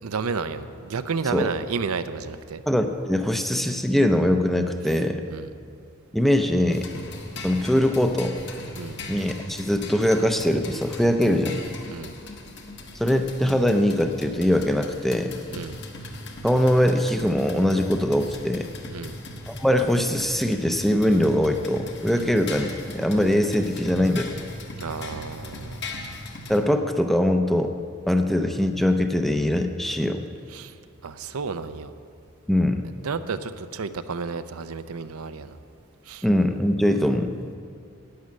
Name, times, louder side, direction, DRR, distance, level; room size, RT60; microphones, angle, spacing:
voice 1, 0.0-2.6 5.3-5.5 8.8-9.0 11.9-12.1 15.5-15.8 18.9-19.2 22.1-22.3 24.8-25.9 30.5-30.7 31.0-31.9 33.0-35.6 36.1-36.2, right 5 dB, 85° right, 11 dB, 0.6 m, -31 dB
voice 2, 2.7-5.2 6.1-6.9 7.4-8.4 9.1-11.6 12.9-15.4 16.4-18.7 19.5-24.3 26.5-27.7 28.1-30.2 32.5-32.8 36.2-37.3, left 1 dB, ahead, 6 dB, 0.5 m, -22 dB
sound 1, 6.7-26.6, left 2 dB, 55° left, 1.3 m, -39 dB
11.5 x 9.5 x 7.6 m, 2.3 s
head